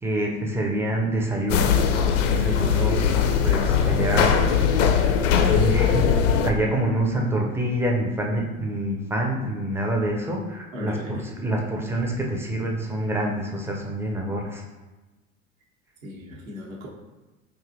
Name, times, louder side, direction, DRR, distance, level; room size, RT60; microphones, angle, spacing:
voice 1, 0.0-1.8 2.3-4.3 5.5-6.1 6.4-14.6, right 1 dB, 5° right, 0 dB, 0.4 m, -26 dB
sound 1, 1.5-6.5, left 7 dB, 65° left, 0.5 m, -20 dB
voice 2, 10.7-11.3 16.0-16.9, left 1 dB, 75° right, -4 dB, 1.0 m, -36 dB
4.8 x 2.6 x 2.5 m, 1.2 s
figure-of-eight pair, 70°, 41 cm